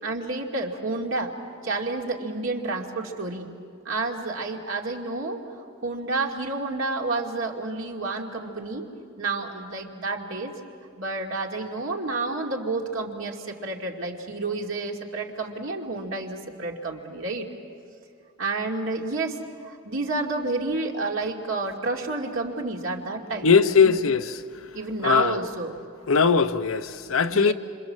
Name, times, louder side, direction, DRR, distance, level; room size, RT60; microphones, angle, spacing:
voice 1, 0.0-1.4 1.6-3.5 3.8-5.4 5.8-8.9 9.2-10.5 11.0-17.5 18.4-19.4 19.7-24.0 24.7-25.8 27.3-27.5, right 3 dB, 70° right, 2.5 m, -30 dB
voice 2, 23.4-24.2 25.0-25.4 26.1-27.5, left 5 dB, 80° left, 0.8 m, -19 dB
27.0 x 26.5 x 7.5 m
head